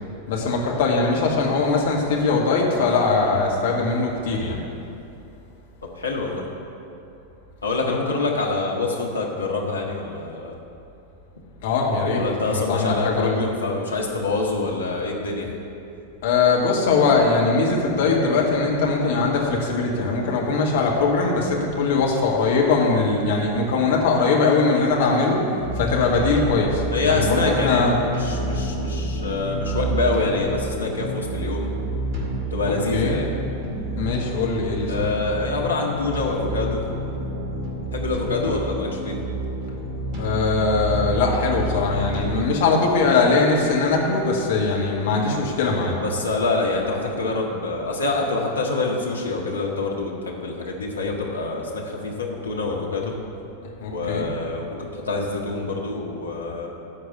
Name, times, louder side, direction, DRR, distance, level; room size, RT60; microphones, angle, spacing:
voice 1, 0.3-4.6 11.6-13.4 16.2-25.4 25.7-27.9 32.9-33.1 34.0-35.1 40.2-46.0 53.8-54.3, left 4 dB, 55° left, -1 dB, 1.8 m, -21 dB
voice 2, 6.0-6.4 7.6-10.6 12.1-15.5 26.9-31.7 32.5-33.3 34.9-36.8 37.9-39.2 46.0-53.2 53.9-56.7, left 3 dB, 75° left, -1 dB, 1.6 m, -26 dB
sound 1, 25.6-42.4, right 1 dB, 35° right, 2.2 m, -29 dB
13.5 x 4.7 x 8.1 m, 2.7 s
figure-of-eight pair, 90°, 0 cm